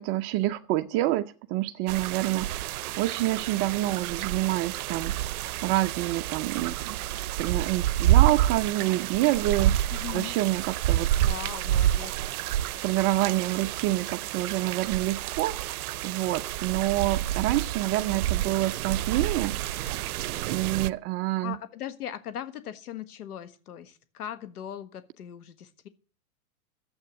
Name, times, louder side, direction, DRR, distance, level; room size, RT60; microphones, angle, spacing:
voice 1, 0.0-7.1 7.4-11.1 12.4-19.9 20.5-21.6, right 16 dB, 30° right, 7 dB, 0.5 m, -28 dB
sound 1, 1.9-20.9, right 13 dB, 70° right, 0.7 m, -28 dB
voice 2, 9.9-10.3 11.2-12.1 21.4-25.9, left 10 dB, 75° left, 11 dB, 1.6 m, -39 dB
12.0 x 7.9 x 8.6 m, 0.40 s
hypercardioid pair, 130°, 45 cm